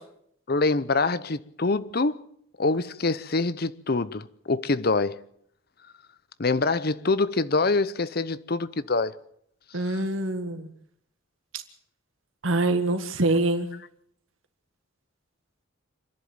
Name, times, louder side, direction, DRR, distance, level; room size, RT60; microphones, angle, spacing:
voice 1, 0.5-2.2 2.6-5.2 6.4-9.1 9.8-10.0, left 3 dB, 50° left, 0.8 m, -25 dB
voice 2, 9.7-10.7 12.4-13.7, right 2 dB, 80° right, 1.7 m, -25 dB
27.5 x 11.0 x 8.8 m
head